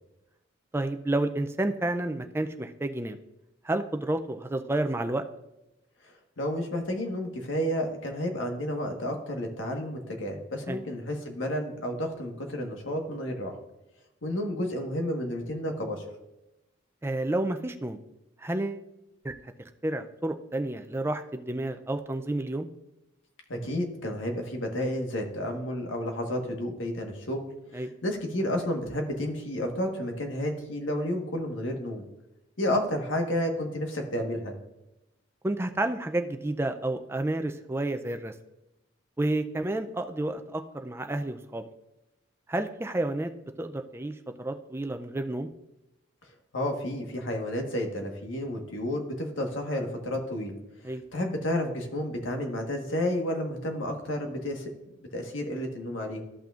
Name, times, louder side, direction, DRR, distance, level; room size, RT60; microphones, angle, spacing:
voice 1, 0.7-3.2 3.6-5.2 10.7-10.8 17.0-18.0 18.4-18.8 19.2-19.3 19.8-22.7 27.7-27.9 35.4-38.3 39.2-41.6 42.5-43.3 43.6-45.5 50.8-51.0, right 2 dB, 10° right, 7 dB, 0.4 m, -30 dB
voice 2, 6.4-13.5 14.2-16.0 23.5-27.4 27.7-32.1 32.6-34.5 46.5-50.6 51.1-54.7 55.1-56.2, left 1 dB, 70° left, 3 dB, 1.5 m, -31 dB
13.5 x 5.8 x 2.5 m, 0.93 s
head